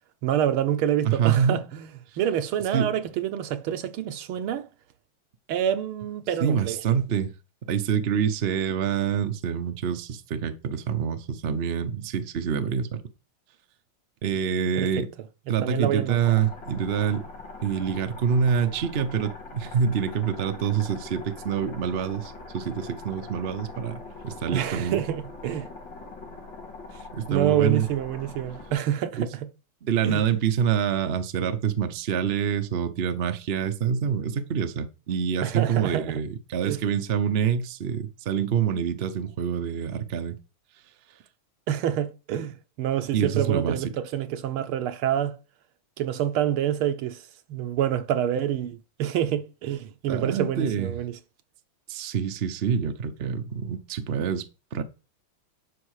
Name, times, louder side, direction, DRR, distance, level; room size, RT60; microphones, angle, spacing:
voice 1, 0.2-1.9 2.2-4.7 5.5-6.8 14.8-15.0 15.5-16.2 24.5-25.7 27.3-29.5 30.0-30.2 35.4-36.2 36.6-36.8 41.7-45.4 46.0-47.2 47.5-51.2, right 10 dB, 80° right, 1.7 m, -27 dB
voice 2, 1.0-1.6 2.7-2.9 6.4-7.3 7.6-13.0 14.2-15.1 15.5-17.2 17.6-25.0 27.1-27.9 29.2-29.3 29.8-40.3 43.1-43.8 50.1-51.0 51.9-54.8, right 7 dB, 55° right, 0.6 m, -26 dB
sound 1, 16.2-28.7, left 3 dB, 60° left, 3.1 m, -42 dB
11.0 x 5.4 x 4.9 m
omnidirectional pair, 2.3 m